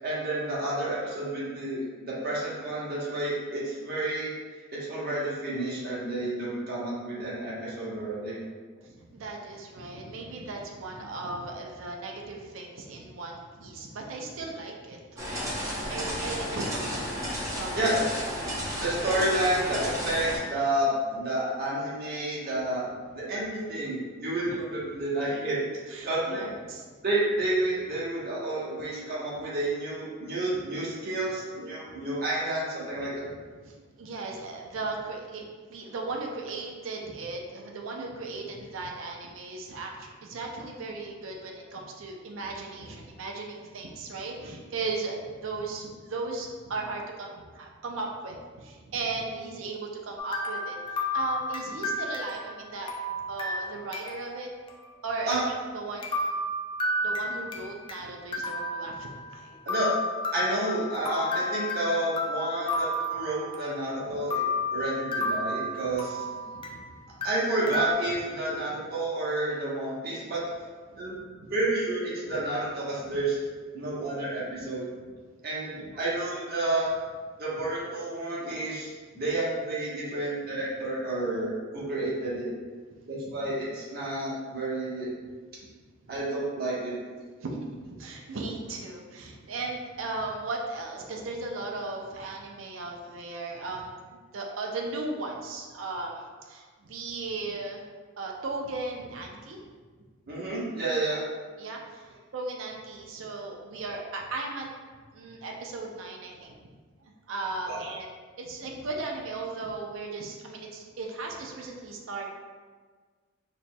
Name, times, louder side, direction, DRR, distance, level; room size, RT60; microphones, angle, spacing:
voice 1, 0.0-4.3 4.9-8.4 17.7-18.0 18.8-22.8 23.1-25.6 26.0-26.5 27.0-33.2 55.3-55.4 59.7-59.9 60.3-64.4 64.7-66.2 67.2-70.4 71.0-71.2 71.5-73.4 73.7-74.9 75.4-76.9 77.4-78.9 79.1-82.5 83.1-85.1 86.1-86.9 100.3-101.2 107.7-107.8 108.6-108.7, right 1 dB, 50° right, -8 dB, 1.2 m, -30 dB
voice 2, 9.1-15.4 15.8-17.8 25.9-26.8 33.6-50.8 51.1-52.9 53.2-54.5 55.0-55.4 55.7-56.3 57.0-59.6 64.1-64.2 66.2-67.0 70.9-71.0 71.4-71.5 75.8-76.0 83.4-83.7 86.0-86.1 87.4-97.8 98.2-99.6 101.6-104.7 105.1-106.6 107.0-112.3, right 3 dB, 75° right, 0 dB, 0.5 m, -37 dB
sound 1, 15.2-20.4, equal, 15° right, 0.7 m, -33 dB
sound 2, 50.2-54.4 54.7-54.8 55.3-55.4 56.0-58.0 58.3-59.4 59.7-63.9 64.3-66.9 67.2-67.9, left 1 dB, 25° left, 0.3 m, -32 dB
4.2 x 3.0 x 2.2 m, 1.5 s
head